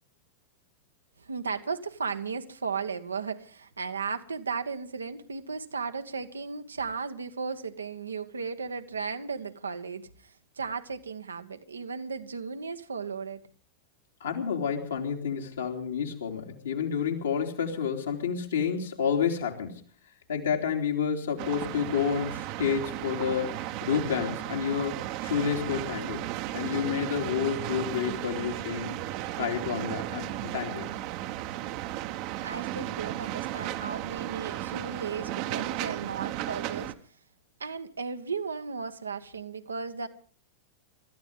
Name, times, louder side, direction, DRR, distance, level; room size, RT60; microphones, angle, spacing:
voice 1, 1.2-13.4 32.4-36.9 37.6-40.1, right 5 dB, 75° right, 1.3 m, -35 dB
voice 2, 14.2-19.8 20.3-26.3 26.5-28.9 29.4-30.9, left 7 dB, 65° left, 3.2 m, -30 dB
sound 1, 21.4-36.9, right 14 dB, 45° right, 1.1 m, -35 dB
26.5 x 14.5 x 3.7 m
figure-of-eight pair, 90°, 0 cm